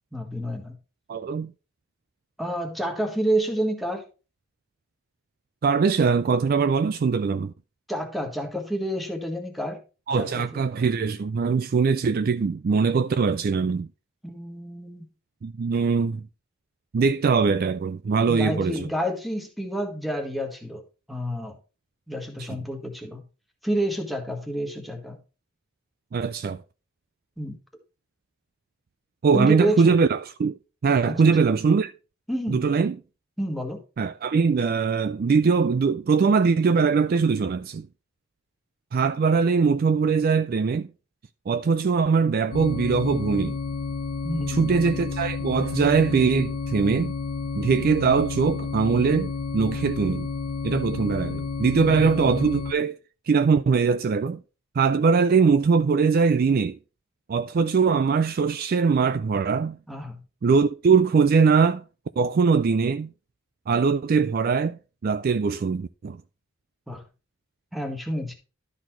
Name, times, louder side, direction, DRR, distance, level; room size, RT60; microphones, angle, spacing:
voice 1, 0.1-0.7 2.4-4.0 7.9-9.8 10.2-10.4 14.2-15.1 18.3-20.8 21.1-21.6 22.1-23.2 23.6-25.2 27.4-27.6 29.3-30.0 31.1-31.2 32.3-32.7 33.4-33.8 44.2-44.7 59.9-60.2 66.9-67.0 67.7-68.3, right 1 dB, ahead, 1.5 m, -29 dB
voice 2, 1.1-1.5 5.6-7.5 10.1-13.9 15.4-16.3 16.9-18.9 26.1-26.6 29.2-30.6 30.8-31.9 32.5-33.0 34.0-37.9 38.9-40.9 41.5-43.6 44.5-47.1 47.5-50.3 50.6-53.0 53.3-54.4 54.8-56.8 57.3-59.8 60.4-61.8 62.2-63.1 63.7-66.2, right 5 dB, 45° right, 0.3 m, -22 dB
sound 1, 42.5-52.7, left 4 dB, 70° left, 0.6 m, -31 dB
12.0 x 4.2 x 4.4 m
head